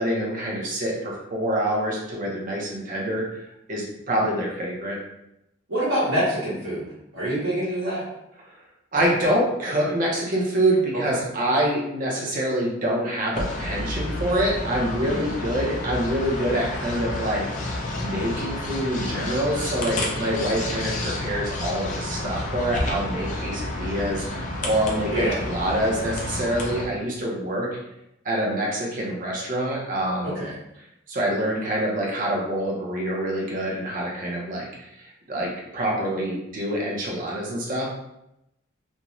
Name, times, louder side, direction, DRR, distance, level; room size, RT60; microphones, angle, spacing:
voice 1, 0.0-3.2 3.7-5.0 8.5-8.6 8.9-17.4 18.0-27.7 28.2-30.3 31.1-37.9, right 1 dB, 40° right, -2 dB, 0.6 m, -26 dB
voice 2, 5.7-6.8 7.1-8.0 15.0-15.2 25.1-25.4 30.3-30.5, right 1 dB, 75° right, -11 dB, 1.0 m, -25 dB
sound 1, 13.3-26.8, left 2 dB, 35° left, 0.4 m, -30 dB
2.5 x 2.1 x 2.9 m, 0.84 s
head